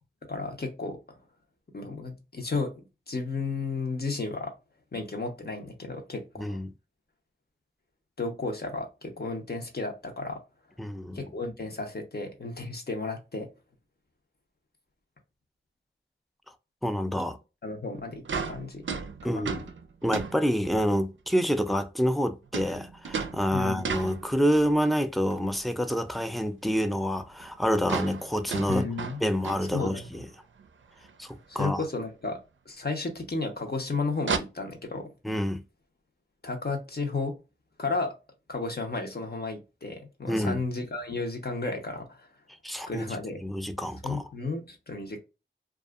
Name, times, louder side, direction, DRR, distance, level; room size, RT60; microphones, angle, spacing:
voice 1, 0.3-1.0 1.7-2.7 3.1-4.5 4.9-6.6 8.2-10.4 11.1-13.5 17.6-18.8 19.2-19.5 23.5-23.8 28.7-29.2 29.7-30.2 31.5-32.4 32.7-35.1 36.4-37.3 37.8-38.1 38.5-42.3 42.9-43.4 44.0-45.2, left 3 dB, 50° left, 0.7 m, -33 dB
voice 2, 6.4-6.7 10.8-11.2 16.8-17.4 19.2-19.6 20.0-28.9 29.2-30.2 31.2-31.8 35.2-35.6 40.3-40.6 42.6-43.1 43.4-44.2, equal, ahead, 0.3 m, -27 dB
sound 1, 17.9-18.0 18.2-20.9 22.5-24.9 25.3-26.0 26.3-26.4 26.7-26.8 27.1-27.2 27.4-27.5 27.8-30.2 30.6-30.7 31.0-31.1 32.2-32.3 34.2-34.4, right 5 dB, 70° right, 0.4 m, -35 dB
2.6 x 2.3 x 2.3 m
wide cardioid pair, 55°, 20 cm